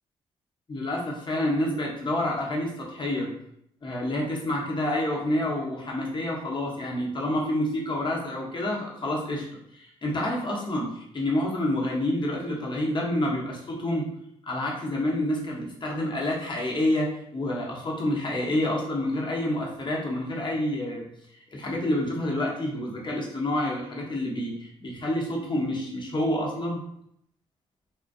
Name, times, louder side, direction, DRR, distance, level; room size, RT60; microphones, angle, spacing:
voice 1, 0.7-3.3 3.8-9.4 9.7-14.1 14.5-21.0 21.5-26.8, left 1 dB, 35° left, -2 dB, 0.8 m, -28 dB
2.4 x 2.1 x 2.5 m, 0.73 s
hypercardioid pair, 40°, 13 cm